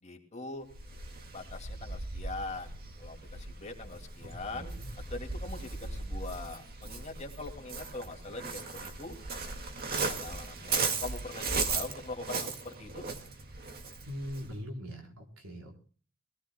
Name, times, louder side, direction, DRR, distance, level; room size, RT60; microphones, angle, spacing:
voice 1, 0.0-0.7 1.3-2.7 3.0-4.7 5.1-9.1 9.8-13.1, left 2 dB, 30° left, 2 dB, 2.3 m, -42 dB
Waves surf, 0.7-14.6, right 4 dB, 45° right, 2.0 m, -37 dB
voice 2, 4.2-4.9 14.1-15.8, equal, 80° right, 1 dB, 4.5 m, -42 dB
22.0 x 17.5 x 2.2 m, 0.41 s
head